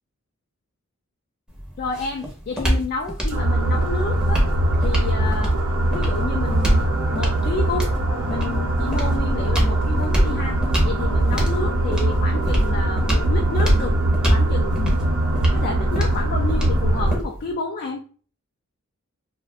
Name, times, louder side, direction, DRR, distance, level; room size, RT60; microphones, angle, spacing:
sound 1, 1.5-17.5, equal, 5° right, 0.6 m, -26 dB
voice 1, 1.8-4.5 4.8-5.5 5.9-6.9 7.1-8.0 8.3-13.9 14.3-15.0 15.5-18.0, left 3 dB, 45° left, 2 dB, 0.3 m, -30 dB
sound 2, 3.3-17.2, right 1 dB, 80° right, 0.6 m, -21 dB
2.4 x 2.0 x 2.6 m, 0.42 s
head